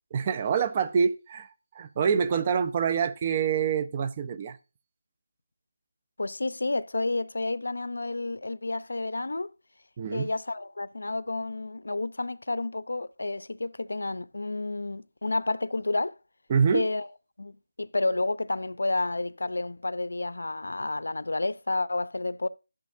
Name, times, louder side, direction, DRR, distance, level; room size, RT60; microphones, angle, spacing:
voice 1, 0.1-1.5 1.8-4.6 10.0-10.3 16.5-16.9, right 6 dB, 25° right, 0.5 m, -26 dB
voice 2, 6.2-9.5 10.1-16.2 16.7-17.1 17.4-22.5, left 2 dB, 80° left, 0.6 m, -30 dB
13.5 x 6.5 x 2.7 m
figure-of-eight pair, 170°, 0 cm